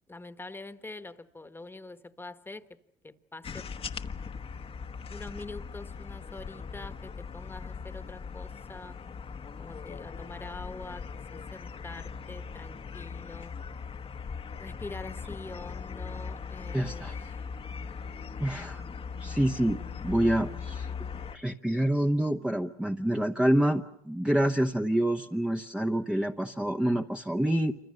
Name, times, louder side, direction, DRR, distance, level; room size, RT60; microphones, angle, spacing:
voice 1, 0.1-2.6 3.0-3.7 5.1-9.0 9.6-13.5 14.6-17.5, left 2 dB, 15° left, 10 dB, 1.4 m, -45 dB
sound 1, 3.4-21.4, left 5 dB, 35° left, 1.1 m, -40 dB
voice 2, 16.7-17.1 18.4-18.8 19.2-20.9 21.3-27.7, right 1 dB, 5° right, 2 dB, 0.9 m, -27 dB
27.5 x 25.5 x 6.5 m, 0.73 s
cardioid pair, 110°, 17 cm